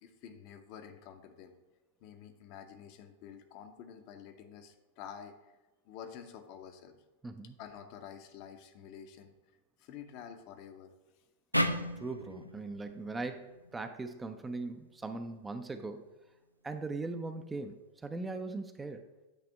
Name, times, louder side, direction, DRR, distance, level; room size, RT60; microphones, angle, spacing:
voice 1, 0.0-1.5 2.0-5.3 5.8-7.0 7.6-9.3 9.8-10.9, left 8 dB, 45° left, 6 dB, 0.7 m, -49 dB
voice 2, 7.2-7.5 12.0-16.1 16.6-19.1, right 3 dB, 10° right, 7 dB, 0.4 m, -40 dB
sound 1, 11.5-14.8, equal, 90° left, 0.4 m, -36 dB
8.4 x 3.4 x 5.1 m, 1.1 s
figure-of-eight pair, 90°, 0 cm